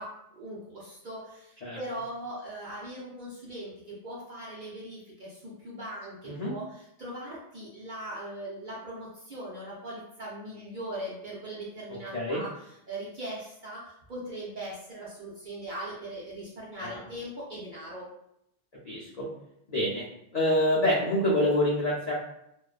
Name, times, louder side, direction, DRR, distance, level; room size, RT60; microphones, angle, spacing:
voice 1, 0.0-12.5 12.9-18.1, right 1 dB, 60° right, -6 dB, 0.5 m, -40 dB
voice 2, 18.8-19.3 19.7-20.0 20.3-22.1, left 1 dB, 80° left, -6 dB, 0.3 m, -26 dB
2.5 x 2.2 x 2.4 m, 0.78 s
omnidirectional pair, 1.3 m